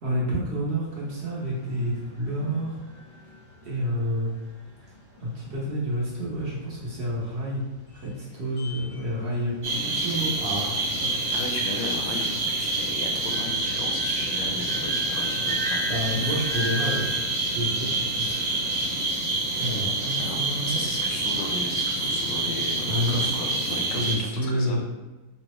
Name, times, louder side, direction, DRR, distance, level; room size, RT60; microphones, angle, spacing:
voice 1, 0.0-2.8 3.6-4.3 5.2-7.6 7.9-11.2 15.9-17.1 17.5-18.2 19.6-20.8 22.9-23.4 23.9-24.8, equal, 65° right, -6 dB, 0.6 m, -29 dB
sound 1, 0.9-19.0, equal, 45° left, 0.7 m, -41 dB
sound 2, 9.6-24.1, right 2 dB, 10° right, 0.7 m, -27 dB
voice 2, 11.3-15.9 16.2-16.3 19.7-24.8, left 3 dB, 70° left, 1 dB, 1.1 m, -36 dB
3.8 x 2.1 x 2.9 m, 1.1 s
omnidirectional pair, 2.1 m